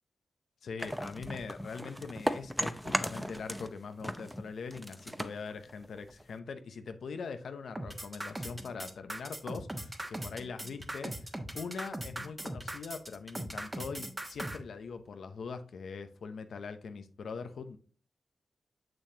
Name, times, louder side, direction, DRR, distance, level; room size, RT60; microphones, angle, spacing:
voice 1, 0.6-17.8, left 5 dB, 85° left, 0.7 m, -42 dB
sound 1, 0.8-3.7 4.0-6.4, equal, ahead, 0.6 m, -36 dB
sound 2, 7.7-14.6, right 1 dB, 20° right, 1.2 m, -39 dB
6.6 x 6.3 x 2.8 m
cardioid pair, 50°, 0 cm